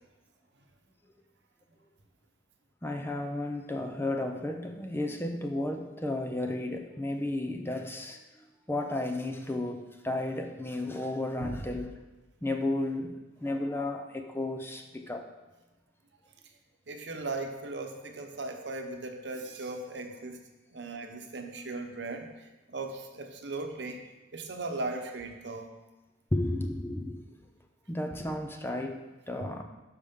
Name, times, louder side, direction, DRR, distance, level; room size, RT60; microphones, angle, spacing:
voice 1, 2.8-12.0 12.4-15.2 26.3-27.2 27.9-29.6, left 1 dB, 15° left, 4 dB, 0.6 m, -33 dB
voice 2, 16.9-20.4 20.7-22.3 22.7-24.0 24.3-25.7 29.4-29.5, right 2 dB, 70° right, 4 dB, 0.9 m, -37 dB
12.0 x 4.9 x 3.7 m, 1.1 s
head